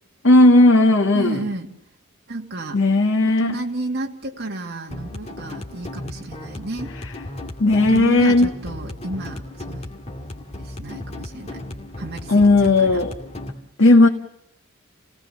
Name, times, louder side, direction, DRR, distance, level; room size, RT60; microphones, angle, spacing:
voice 1, 0.2-1.4 2.7-3.6 6.9-7.1 7.6-8.5 12.3-13.2 13.8-14.1, left 2 dB, 60° left, 1.8 m, -15 dB
voice 2, 1.1-1.7 2.3-2.8 3.2-6.9 7.8-9.4 9.7-9.8 10.5-11.6 12.0-12.3 12.6-13.0, right 2 dB, 50° right, 2.6 m, -31 dB
sound 1, 4.9-13.5, left 1 dB, 30° left, 2.4 m, -35 dB
29.5 x 18.0 x 6.9 m
head